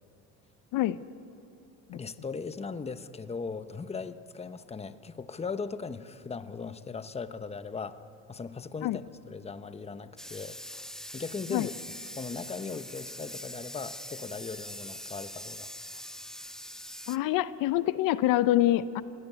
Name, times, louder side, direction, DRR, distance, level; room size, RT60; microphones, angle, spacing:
voice 1, 1.9-8.0 8.3-10.6 11.1-11.7 12.2-15.7, left 5 dB, 15° left, 11 dB, 1.0 m, -38 dB
sound 1, 10.2-17.2, equal, ahead, 0.5 m, -43 dB
voice 2, 17.1-19.0, left 14 dB, 70° left, 15 dB, 0.8 m, -26 dB
26.0 x 17.5 x 9.7 m, 2.6 s
supercardioid pair, 100°, 35 cm